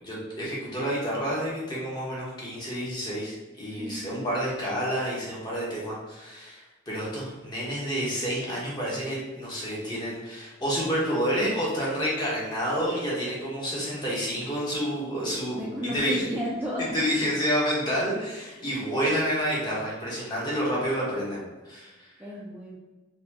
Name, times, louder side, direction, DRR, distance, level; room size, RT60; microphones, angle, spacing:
voice 1, 0.0-16.2 16.9-22.1, equal, 20° left, -6 dB, 1.1 m, -29 dB
voice 2, 3.8-4.3 15.5-17.1 18.4-18.7 22.2-22.8, equal, 10° right, -7 dB, 0.5 m, -33 dB
4.0 x 2.4 x 2.9 m, 1.2 s
head